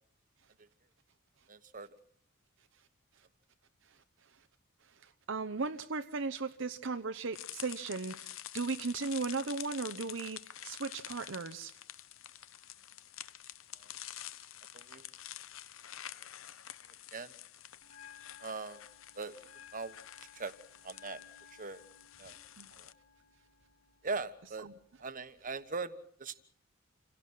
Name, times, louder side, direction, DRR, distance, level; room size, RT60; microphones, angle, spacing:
voice 1, 1.5-2.0 13.8-13.9 14.7-15.0 17.1-17.3 18.4-18.8 19.1-19.4 19.7-20.0 20.3-20.5 20.8-21.2 21.5-21.8 22.2-22.4 22.8-22.9 24.0-24.7 25.0-26.4, right 4 dB, 40° right, 1.3 m, -40 dB
voice 2, 5.0-11.7 22.6-22.7, right 4 dB, 60° right, 0.8 m, -37 dB
sound 1, 7.3-22.9, left 12 dB, 70° left, 0.8 m, -48 dB
Bell, 17.8-25.8, left 8 dB, 35° left, 2.6 m, -58 dB
28.0 x 17.0 x 6.2 m
head